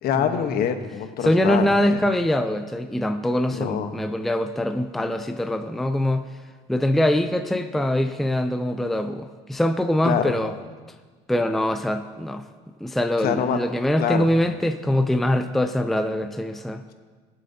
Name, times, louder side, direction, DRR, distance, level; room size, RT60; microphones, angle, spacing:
voice 1, 0.0-1.6 1.9-2.0 3.5-3.9 10.0-10.2 13.2-13.6 14.0-14.3, left 8 dB, 60° left, 7 dB, 1.1 m, -25 dB
voice 2, 1.2-6.3 6.7-10.5 11.3-12.5 12.8-16.8, left 1 dB, ahead, 8 dB, 0.5 m, -23 dB
22.0 x 7.6 x 2.8 m, 1.4 s
supercardioid pair, 100°, 18 cm